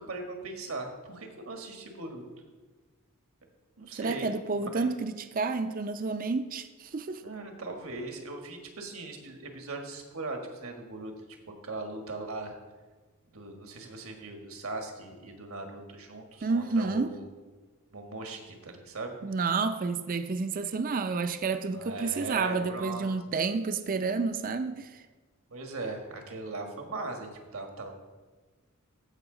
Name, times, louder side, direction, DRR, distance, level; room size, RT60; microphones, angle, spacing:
voice 1, 0.0-2.2 3.8-4.3 4.5-4.9 7.2-11.1 11.6-12.5 13.3-17.3 17.9-19.2 21.7-23.1 25.5-27.9, right 2 dB, 75° right, 1.6 m, -39 dB
voice 2, 3.9-7.2 16.4-17.1 19.2-24.9, right 4 dB, 40° right, 0.5 m, -30 dB
15.0 x 5.6 x 3.9 m
head